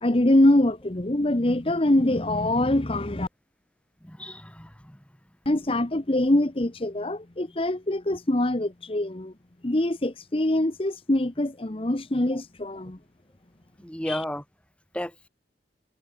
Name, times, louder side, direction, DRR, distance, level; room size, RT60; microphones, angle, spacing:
voice 1, 0.0-3.3 5.5-9.3 9.6-13.0 14.0-14.2, left 1 dB, 30° left, 1.0 m, -24 dB
voice 2, 4.0-4.7 13.8-14.4 14.9-15.3, equal, 5° left, 3.0 m, -33 dB
head